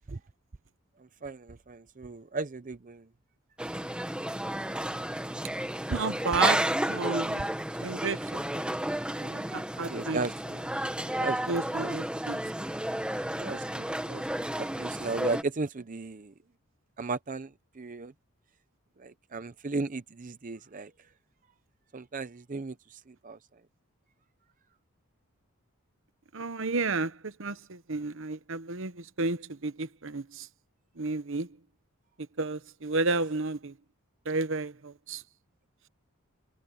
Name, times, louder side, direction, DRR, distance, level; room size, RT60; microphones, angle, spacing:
voice 1, 1.2-3.0 9.8-10.3 11.2-11.4 11.8-11.9 13.4-14.2 14.6-16.3 17.0-18.1 19.0-20.9 21.9-23.4, right 3 dB, 35° right, 0.6 m, -35 dB
sound 1, 3.6-15.4, right 1 dB, 5° right, 1.3 m, -32 dB
voice 2, 5.9-7.5 7.8-8.6 9.2-10.3 11.5-12.4 26.3-30.5 31.0-31.5 32.4-33.7 34.2-35.2, right 3 dB, 60° right, 1.0 m, -32 dB
head